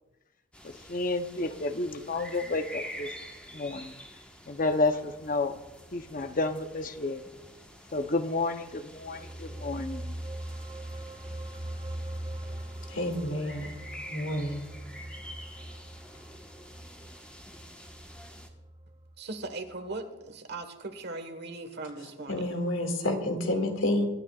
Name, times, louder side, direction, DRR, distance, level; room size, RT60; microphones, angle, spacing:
sound 1, 0.5-18.5, equal, 5° left, 1.3 m, -48 dB
voice 1, 0.6-3.1 3.5-3.9 4.5-5.6 5.9-7.2 7.9-10.1, left 2 dB, 40° left, 8 dB, 0.8 m, -31 dB
sound 2, 8.8-19.5 19.8-20.0, right 1 dB, 25° right, 0.7 m, -41 dB
voice 2, 12.9-13.8 14.1-14.6 22.3-24.1, left 1 dB, 80° left, 3 dB, 2.2 m, -29 dB
voice 3, 19.2-22.5, right 2 dB, 55° right, 8 dB, 1.4 m, -39 dB
23.5 x 12.5 x 2.4 m, 1.1 s
head